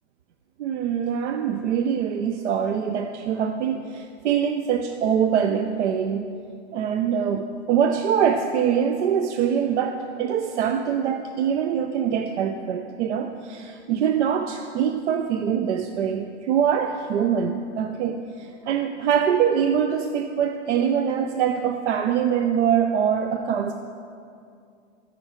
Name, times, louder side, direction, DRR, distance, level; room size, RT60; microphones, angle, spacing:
voice 1, 0.6-6.3 6.7-23.7, right 8 dB, 80° right, 7 dB, 0.6 m, -24 dB
14.5 x 5.2 x 4.3 m, 2.4 s
hypercardioid pair, 135°, 34 cm